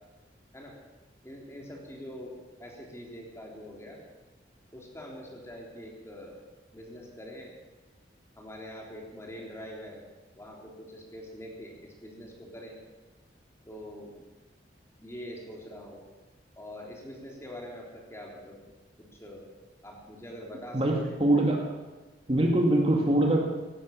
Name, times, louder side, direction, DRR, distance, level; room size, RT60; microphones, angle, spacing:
voice 1, 1.2-2.3 2.6-4.0 4.7-6.4 6.7-7.6 8.3-10.0 10.3-12.8 13.6-14.2 15.0-16.0 16.6-18.6 19.0-19.4 19.8-21.5, equal, 15° left, -1 dB, 3.4 m, -44 dB
voice 2, 20.7-21.6 22.3-23.4, right 1 dB, 35° right, 0 dB, 2.1 m, -23 dB
16.5 x 11.5 x 7.0 m, 1.2 s
head